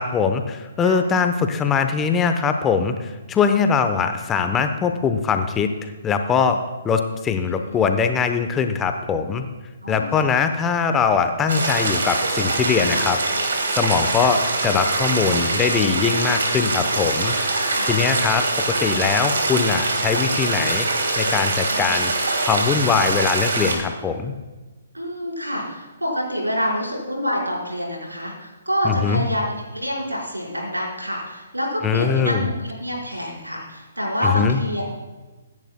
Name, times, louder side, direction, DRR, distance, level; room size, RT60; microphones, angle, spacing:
voice 1, 0.0-6.6 6.8-9.5 9.9-13.2 13.7-17.4 17.8-18.5 18.8-22.1 22.4-24.3 28.8-29.3 31.8-32.5 34.2-34.6, left 6 dB, 15° left, 7 dB, 0.8 m, -21 dB
voice 2, 7.6-7.9 9.8-10.3 12.9-13.1 16.0-16.3 17.7-18.0 21.7-22.0 24.9-34.8, equal, 85° right, -2 dB, 4.7 m, -27 dB
sound 1, 11.5-23.8, right 2 dB, 60° right, 2.7 m, -23 dB
24.5 x 11.0 x 2.2 m, 1.2 s
figure-of-eight pair, 130°, 0 cm